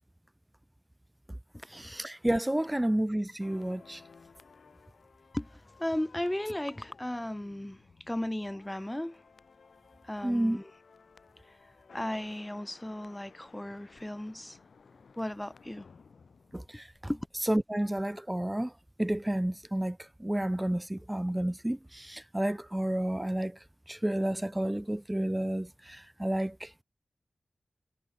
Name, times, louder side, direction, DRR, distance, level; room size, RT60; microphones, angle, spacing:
voice 1, 1.7-4.0 10.2-10.6 16.5-16.9 17.5-18.7 19.0-23.6 23.9-26.7, right 1 dB, 15° right, 0.9 m, -31 dB
sound 1, 3.4-17.6 17.8-18.0, left 5 dB, 90° left, 7.6 m, -57 dB
voice 2, 5.3-7.8 8.1-9.2 10.0-10.7 11.9-14.6 15.2-15.8 17.1-17.3, left 1 dB, 15° left, 1.0 m, -35 dB
cardioid pair, 45°, 0 cm